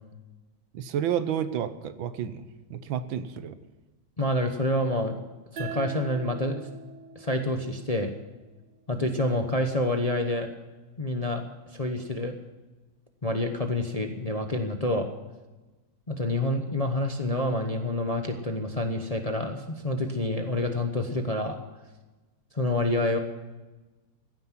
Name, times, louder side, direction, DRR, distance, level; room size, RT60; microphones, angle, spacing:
voice 1, 0.7-2.4 2.7-3.6, right 9 dB, 80° right, 12 dB, 1.7 m, -30 dB
voice 2, 4.2-5.1 5.5-6.7 7.1-8.1 8.9-10.5 11.0-11.4 11.7-12.4 13.2-15.1 16.1-21.6 22.5-23.2, left 1 dB, 25° left, 5 dB, 0.8 m, -27 dB
sound 1, 5.6-8.8, right 6 dB, 60° right, 2.1 m, -42 dB
15.5 x 9.7 x 7.5 m, 1.2 s
omnidirectional pair, 2.1 m